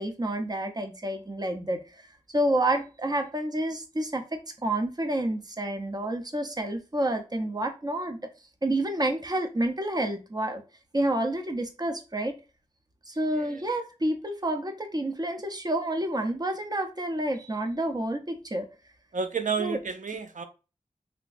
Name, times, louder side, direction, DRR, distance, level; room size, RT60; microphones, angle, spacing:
voice 1, 0.0-2.0 2.3-8.2 8.6-10.6 10.9-12.4 13.1-18.7 19.6-19.8, right 1 dB, 30° right, 0.7 m, -29 dB
voice 2, 19.1-20.4, right 5 dB, 70° right, 0.5 m, -31 dB
3.3 x 2.9 x 2.5 m
wide cardioid pair, 75°, 14 cm